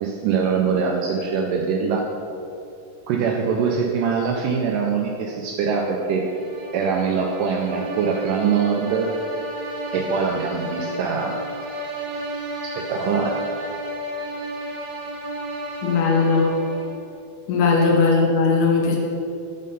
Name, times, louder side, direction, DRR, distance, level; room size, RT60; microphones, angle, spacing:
voice 1, 0.0-2.1 3.1-6.3 6.7-9.1 9.9-11.4 12.6-13.4 17.8-18.0, right 6 dB, 85° right, 0 dB, 1.9 m, -23 dB
sound 1, 6.1-17.1, equal, 60° right, 2.2 m, -32 dB
voice 2, 15.8-16.5 17.5-19.0, left 4 dB, 75° left, -1 dB, 2.2 m, -18 dB
6.4 x 3.7 x 5.4 m, 2.6 s
omnidirectional pair, 4.1 m